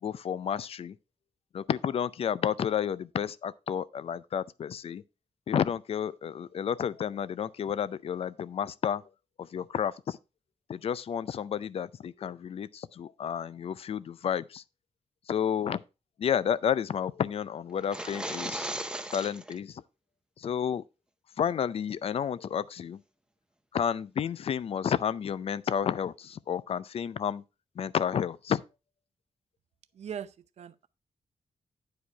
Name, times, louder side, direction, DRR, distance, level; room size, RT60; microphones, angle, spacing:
voice 1, 0.0-1.0 1.5-5.0 5.5-9.0 9.4-10.2 10.7-14.6 15.3-15.8 16.2-18.7 19.1-19.8 20.4-20.8 21.4-23.0 23.7-27.4 27.8-28.6, left 8 dB, 60° left, 0.5 m, -31 dB
sound 1, 17.8-19.6, right 1 dB, 5° right, 0.7 m, -36 dB
voice 2, 29.9-30.9, right 8 dB, 70° right, 0.6 m, -40 dB
10.0 x 4.9 x 4.5 m
wide cardioid pair, 130°, 11 cm